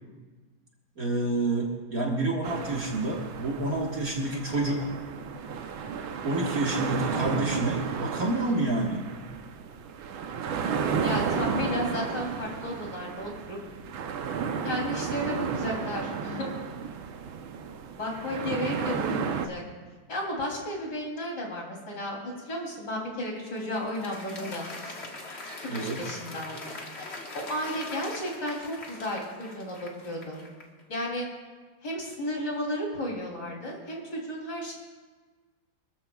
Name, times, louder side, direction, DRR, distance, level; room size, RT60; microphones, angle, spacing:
voice 1, 1.0-4.9 6.2-9.1 25.7-26.0, right 2 dB, 45° right, -2 dB, 2.0 m, -28 dB
sound 1, 2.4-19.5, right 6 dB, 85° right, 1.7 m, -33 dB
voice 2, 11.0-13.6 14.6-16.5 17.9-19.6 20.1-25.1 25.6-26.7 27.3-30.4 30.9-31.3 31.8-34.8, left 1 dB, 55° left, -2 dB, 3.9 m, -33 dB
Applause, 23.2-30.8, left 2 dB, 35° left, 1.7 m, -42 dB
26.0 x 13.5 x 2.4 m, 1.4 s
omnidirectional pair, 2.2 m